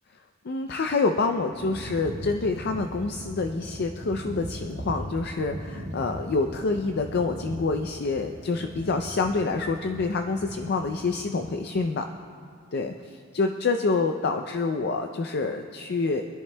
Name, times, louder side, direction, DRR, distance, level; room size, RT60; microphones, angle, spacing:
voice 1, 0.4-12.0 12.7-16.2, left 3 dB, 50° left, 5 dB, 0.4 m, -27 dB
sound 1, 1.5-11.7, equal, 65° right, 1.8 m, -39 dB
sound 2, 2.2-6.8, equal, 10° left, 1.5 m, -52 dB
25.0 x 10.5 x 2.2 m, 2.3 s
head